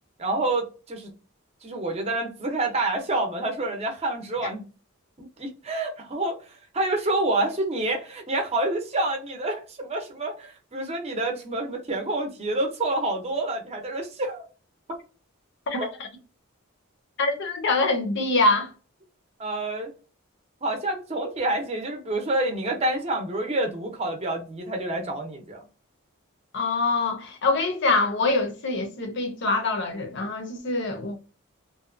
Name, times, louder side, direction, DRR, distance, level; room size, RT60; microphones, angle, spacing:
voice 1, 0.2-1.1 1.6-4.6 5.2-6.4 6.7-14.5 14.9-15.0 15.7-15.9 19.4-19.9 20.6-25.6, right 2 dB, 30° right, 0.6 m, -28 dB
voice 2, 17.2-18.7 26.5-31.2, left 3 dB, 55° left, 0.6 m, -24 dB
2.7 x 2.2 x 2.5 m
head